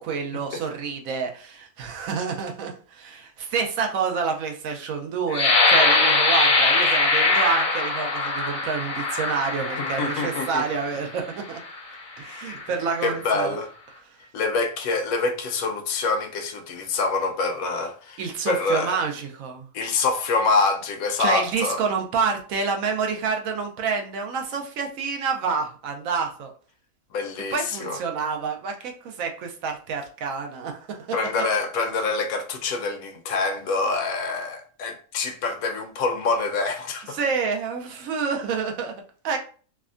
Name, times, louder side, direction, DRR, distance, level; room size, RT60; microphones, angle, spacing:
voice 1, 0.0-11.6 12.2-13.6 18.2-19.7 21.2-26.5 27.5-31.1 37.1-39.4, right 5 dB, 80° right, 1.0 m, -28 dB
sound 1, 5.3-11.0 11.6-11.8 12.3-12.7, left 3 dB, 45° left, 0.7 m, -22 dB
voice 2, 9.8-10.6 12.5-12.6 13.0-13.7 14.3-19.0 19.7-21.8 27.1-28.0 31.1-37.2, left 4 dB, 85° left, 1.0 m, -26 dB
3.3 x 2.2 x 2.4 m
omnidirectional pair, 1.5 m